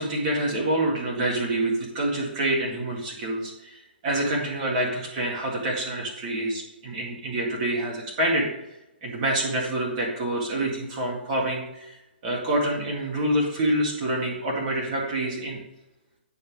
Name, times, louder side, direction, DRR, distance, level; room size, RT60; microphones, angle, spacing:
voice 1, 0.0-8.5 9.0-12.0 12.2-15.6, right 1 dB, 40° right, -1 dB, 2.3 m, -27 dB
9.4 x 3.5 x 6.3 m, 0.90 s
hypercardioid pair, 135°, 6 cm